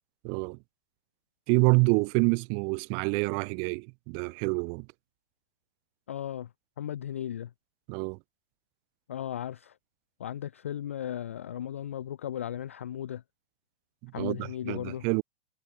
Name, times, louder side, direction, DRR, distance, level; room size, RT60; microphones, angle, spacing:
voice 1, 0.2-0.6 1.5-4.9 7.9-8.2 14.0-15.2, right 40 dB or more, 20° right, 1.2 m, -27 dB
voice 2, 6.1-6.5 6.8-7.5 9.1-9.7 10.2-13.2 14.1-15.1, left 10 dB, 15° left, 0.4 m, -36 dB
hypercardioid pair, 175°, 29 cm